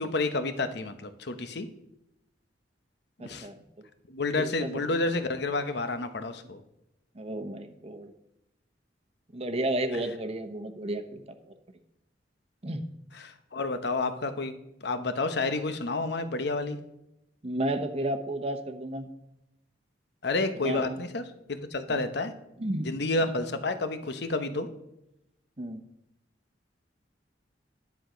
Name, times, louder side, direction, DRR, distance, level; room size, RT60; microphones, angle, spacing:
voice 1, 0.0-1.7 3.2-3.5 4.1-6.6 13.1-14.5 14.8-16.8 20.2-22.3 22.8-24.7, left 3 dB, 65° left, 10 dB, 0.9 m, -30 dB
voice 2, 3.2-3.6 4.4-4.7 7.2-8.1 9.3-11.2 12.6-12.8 17.4-19.0 20.5-21.0 21.9-22.0 22.6-22.9 25.6-25.8, right 1 dB, 35° right, 6 dB, 0.9 m, -32 dB
10.5 x 8.0 x 5.1 m, 0.87 s
head